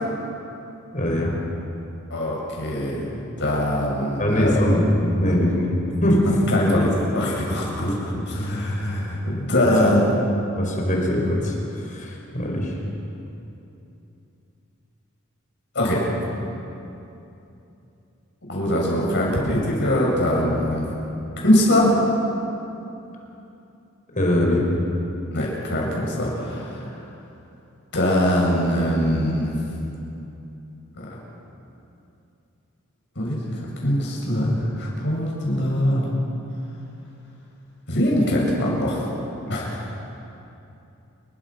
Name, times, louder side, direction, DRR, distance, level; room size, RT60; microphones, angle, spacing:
voice 1, 0.9-1.3 4.2-5.7 6.0-6.3 7.8-8.2 9.6-9.9 10.6-12.8 24.1-24.7, left 1 dB, 40° left, 0 dB, 4.9 m, -22 dB
voice 2, 2.1-4.6 5.2-5.3 6.2-7.9 8.3-10.1 15.7-16.3 18.5-20.9 21.4-21.9 25.3-26.9 27.9-29.6 31.1-31.2 33.2-36.0 37.9-39.1 39.5-39.9, left 1 dB, 60° left, -3 dB, 7.7 m, -22 dB
29.0 x 23.0 x 6.1 m, 2.8 s
head